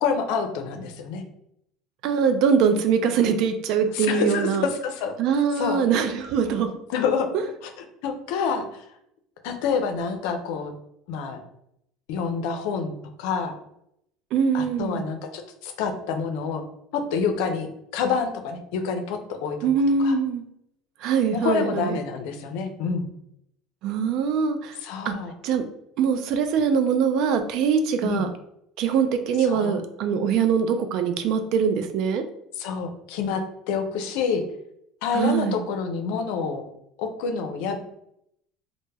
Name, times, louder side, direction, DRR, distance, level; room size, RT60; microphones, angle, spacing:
voice 1, 0.0-1.2 3.9-5.1 5.6-5.8 6.9-7.3 7.6-8.8 9.4-10.7 11.1-11.4 12.1-13.5 14.5-16.6 16.9-19.7 20.0-20.2 21.3-23.1 24.8-25.3 28.0-28.2 29.4-29.8 32.6-33.4 33.7-34.4 35.0-36.7 37.0-37.8, left 6 dB, 75° left, 6 dB, 0.4 m, -27 dB
voice 2, 2.0-4.7 5.2-6.7 14.3-15.0 19.6-20.5 21.0-22.0 23.8-24.8 25.0-25.1 25.4-25.6 26.0-28.3 28.8-32.2 35.1-35.6, right 6 dB, 65° right, 8 dB, 0.3 m, -23 dB
2.1 x 2.0 x 3.3 m, 0.76 s
supercardioid pair, 85°, 0 cm